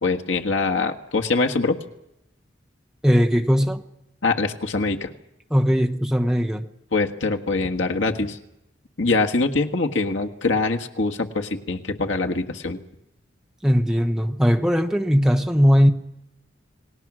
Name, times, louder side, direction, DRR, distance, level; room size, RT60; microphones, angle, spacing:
voice 1, 0.0-1.8 4.2-5.1 6.9-8.4 9.0-12.8, left 3 dB, 85° left, 3 dB, 1.7 m, -23 dB
voice 2, 3.0-3.8 5.5-6.6 13.6-15.9, equal, 5° right, 3 dB, 1.1 m, -19 dB
28.5 x 19.0 x 6.3 m, 0.84 s
head